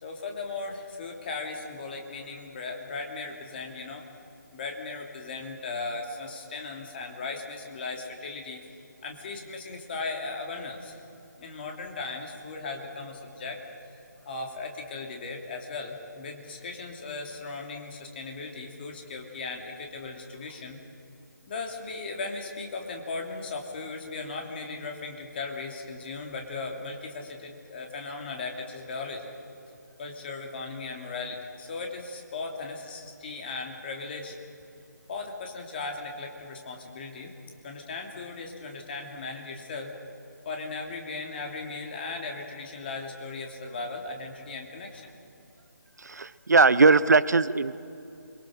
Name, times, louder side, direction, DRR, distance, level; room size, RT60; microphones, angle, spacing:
voice 1, 0.0-4.0 4.5-8.6 9.0-11.0 11.4-13.6 13.9-20.8 21.5-29.3 30.0-34.4 35.1-37.3 37.6-39.9 40.4-45.1, left 3 dB, 30° left, 2 dB, 3.0 m, -37 dB
voice 2, 46.0-47.8, right 4 dB, 65° right, 15 dB, 0.8 m, -20 dB
28.5 x 23.0 x 6.4 m, 2.8 s
figure-of-eight pair, 150°, 10 cm